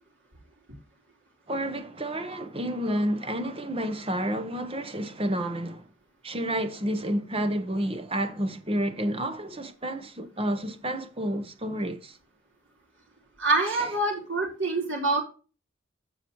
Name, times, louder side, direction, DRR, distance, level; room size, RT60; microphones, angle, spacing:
voice 1, 1.5-5.9 6.2-12.2 13.7-13.9, right 1 dB, 25° right, 0.9 m, -30 dB
voice 2, 13.4-15.2, right 2 dB, 60° right, 3.9 m, -25 dB
15.0 x 5.0 x 3.0 m
head